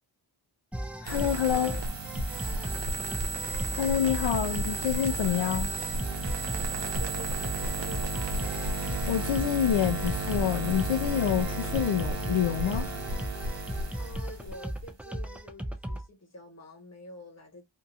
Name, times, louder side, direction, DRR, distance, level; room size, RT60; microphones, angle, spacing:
sound 1, 0.7-16.0, equal, 5° right, 0.4 m, -37 dB
voice 1, 1.0-1.7 3.7-5.7 9.1-12.9, left 9 dB, 75° left, 0.6 m, -27 dB
sound 2, 1.0-14.8, right 1 dB, 65° right, 1.0 m, -33 dB
voice 2, 1.5-1.9 6.7-8.6 14.0-17.6, left 2 dB, 35° left, 1.4 m, -46 dB
2.8 x 2.4 x 2.6 m
wide cardioid pair, 95°, 46 cm